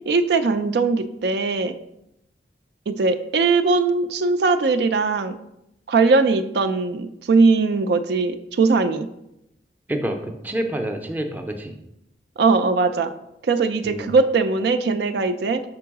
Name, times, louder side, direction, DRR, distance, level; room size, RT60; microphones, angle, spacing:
voice 1, 0.1-1.7 2.9-5.4 5.9-9.1 12.4-13.1 13.4-15.6, right 4 dB, 65° right, 8 dB, 0.4 m, -20 dB
voice 2, 9.9-11.8 13.8-14.1, right 1 dB, 10° right, 4 dB, 0.5 m, -28 dB
6.1 x 3.8 x 4.7 m, 0.84 s
head